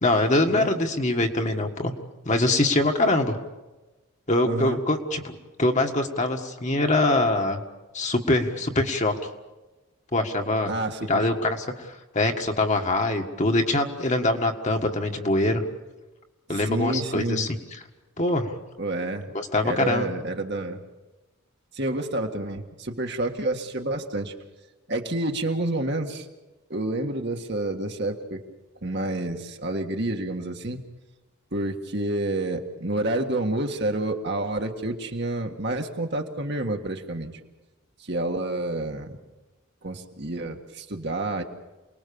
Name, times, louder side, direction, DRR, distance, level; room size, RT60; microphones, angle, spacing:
voice 1, 0.0-1.9 2.3-3.4 4.3-7.6 7.9-9.1 10.1-10.7 11.1-15.6 16.5-17.6 18.2-18.5 19.3-20.1, left 2 dB, 30° left, 3 dB, 1.7 m, -23 dB
voice 2, 4.5-4.8 10.7-11.3 16.5-17.5 18.8-19.3 19.6-20.8 21.7-24.3 24.9-26.3 26.7-28.4 28.8-30.8 31.5-37.3 38.0-39.2 39.8-41.4, right 2 dB, 50° right, 3 dB, 1.8 m, -29 dB
28.5 x 20.0 x 7.1 m, 1.1 s
head